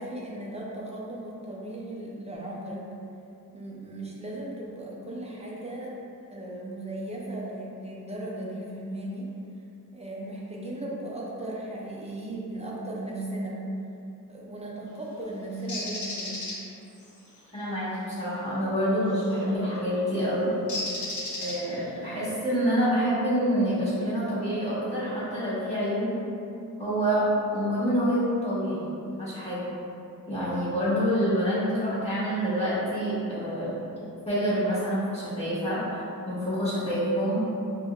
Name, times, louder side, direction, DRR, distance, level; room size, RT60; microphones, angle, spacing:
voice 1, 0.0-2.9 3.5-6.0 6.3-9.3 9.9-13.6 14.3-16.5, right 1 dB, 20° right, -5 dB, 0.4 m, -36 dB
Bird, 15.7-16.5 19.2-19.4 20.7-21.9, left 2 dB, 55° left, 0.7 m, -33 dB
voice 2, 17.5-20.5 21.4-26.1 26.8-27.2 27.5-28.8 29.2-29.6 30.3-33.7 34.3-35.8 36.2-37.4, equal, 20° left, -12 dB, 1.1 m, -27 dB
5.1 x 2.1 x 2.3 m, 2.7 s
wide cardioid pair, 170°, 35 cm